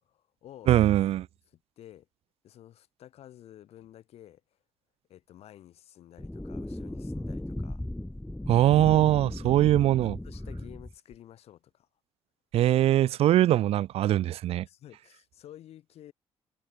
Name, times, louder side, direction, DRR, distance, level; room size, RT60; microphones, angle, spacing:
voice 1, 0.1-0.8 1.5-2.1 2.4-4.4 5.1-7.8 9.3-9.7 10.0-11.9 14.6-16.1, left 12 dB, 80° left, 2.2 m, -51 dB
voice 2, 0.7-1.3 8.5-10.2 12.5-14.7, right 13 dB, 75° right, 0.4 m, -22 dB
sound 1, 6.2-11.1, left 1 dB, 10° left, 1.3 m, -36 dB
cardioid pair, 80°, 10 cm